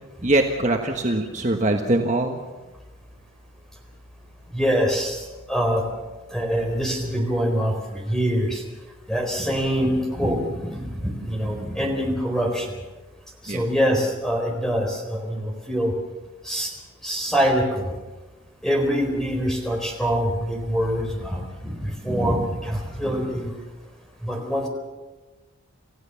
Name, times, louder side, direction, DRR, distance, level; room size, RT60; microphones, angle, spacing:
voice 1, 0.2-2.4 13.5-13.6, right 2 dB, 35° right, 3 dB, 1.3 m, -22 dB
voice 2, 4.5-5.8 6.3-8.6 9.1-12.7 13.4-15.9 16.5-16.7 17.0-17.9 18.6-23.5 24.2-24.7, equal, 5° left, 1 dB, 4.3 m, -24 dB
28.5 x 15.5 x 7.1 m, 1.2 s
head